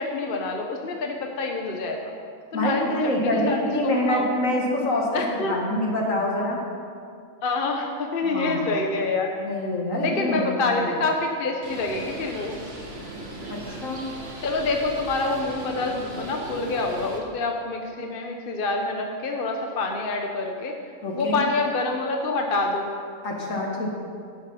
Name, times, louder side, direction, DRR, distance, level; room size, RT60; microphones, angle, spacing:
voice 1, 0.0-2.1 2.5-3.6 3.8-4.3 5.1-5.6 7.4-9.3 10.0-12.6 14.4-20.8 21.1-22.9, left 3 dB, 45° left, 2 dB, 1.0 m, -27 dB
voice 2, 2.5-6.6 8.2-8.7 9.4-10.5 13.5-14.0 21.0-21.4 23.2-23.9, left 1 dB, 70° left, -1 dB, 2.3 m, -26 dB
Bird, 11.6-17.2, right 1 dB, 50° right, 1.8 m, -38 dB
12.0 x 9.2 x 5.6 m, 2.3 s
omnidirectional pair, 1.4 m